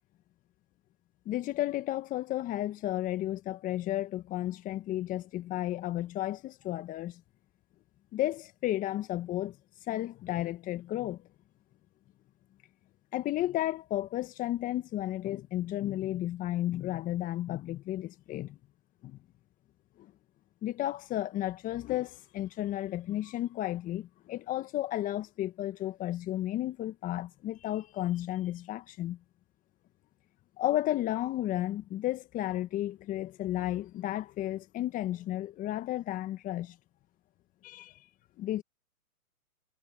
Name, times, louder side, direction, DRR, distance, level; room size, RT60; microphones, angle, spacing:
voice 1, 1.2-7.2 8.1-9.6 9.9-11.2 13.1-18.6 19.0-19.2 20.0-20.1 20.6-29.2 30.6-36.8 37.6-37.9 38.4-38.6, left 14 dB, 20° left, 1.4 m, -33 dB
hypercardioid pair, 135°, 45 cm